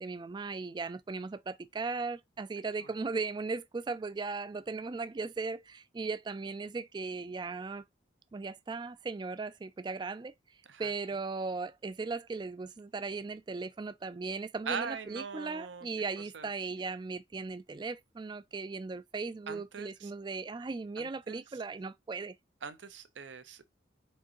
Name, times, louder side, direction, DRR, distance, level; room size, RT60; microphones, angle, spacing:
voice 1, 0.0-7.8 8.3-10.3 10.8-22.3, right 4 dB, 25° right, 0.3 m, -37 dB
voice 2, 14.7-15.9 16.3-16.5 19.5-20.1 21.0-21.4 22.6-23.6, right 6 dB, 85° right, 0.7 m, -41 dB
4.5 x 3.6 x 2.8 m
head